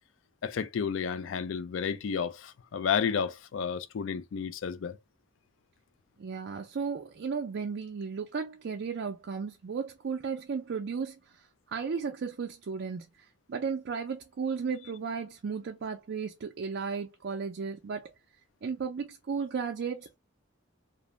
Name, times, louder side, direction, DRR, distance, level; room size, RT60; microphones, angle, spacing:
voice 1, 0.4-5.0, left 6 dB, 70° left, 0.4 m, -31 dB
voice 2, 6.2-18.1 18.6-20.2, right 5 dB, 60° right, 0.4 m, -35 dB
2.5 x 2.0 x 3.0 m
head